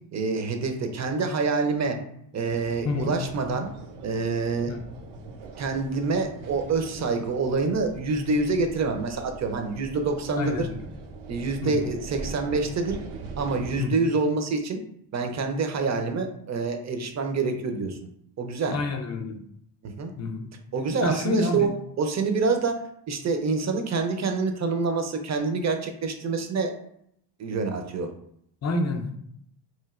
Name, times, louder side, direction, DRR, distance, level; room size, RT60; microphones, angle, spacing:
voice 1, 0.1-2.0 2.3-3.7 4.0-4.8 5.6-10.7 11.3-13.0 13.4-14.8 15.1-18.0 18.4-18.8 19.8-20.1 20.7-22.8 23.1-26.7 27.4-28.1, right 4 dB, 35° right, 5 dB, 0.5 m, -26 dB
sound 1, 2.4-13.8, right 4 dB, 75° right, 0.7 m, -42 dB
voice 2, 2.8-3.1 4.7-4.8 10.3-10.8 11.6-11.8 13.8-14.0 18.7-19.4 20.2-20.5 21.0-21.7 28.6-29.2, left 3 dB, 35° left, 5 dB, 0.4 m, -28 dB
3.1 x 2.5 x 2.4 m, 0.72 s
cardioid pair, 85°, 48 cm